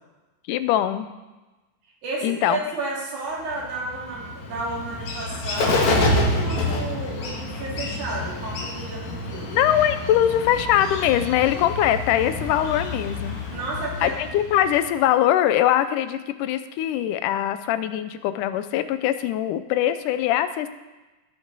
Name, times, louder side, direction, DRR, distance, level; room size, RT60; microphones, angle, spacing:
voice 1, 0.5-1.1 2.2-2.6 9.5-13.4 14.0-20.7, left 11 dB, 85° left, 11 dB, 2.1 m, -22 dB
voice 2, 2.0-9.5 13.5-14.1, right 2 dB, 70° right, -4 dB, 3.8 m, -32 dB
Bird, 3.5-15.0, left 2 dB, 65° left, 2.7 m, -28 dB
17.5 x 6.2 x 4.0 m, 1.1 s
omnidirectional pair, 3.7 m